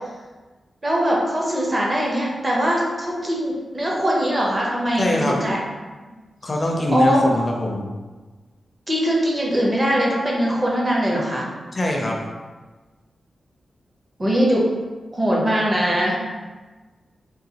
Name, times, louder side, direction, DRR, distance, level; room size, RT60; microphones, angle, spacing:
voice 1, 0.8-5.6 6.9-7.2 8.9-11.5 14.2-14.7 15.1-16.2, equal, 20° right, -3 dB, 0.6 m, -21 dB
voice 2, 5.0-5.4 6.4-7.9 11.7-12.1, left 1 dB, 25° left, -1 dB, 0.4 m, -22 dB
3.8 x 2.3 x 2.8 m, 1.3 s
wide cardioid pair, 150°, 0 cm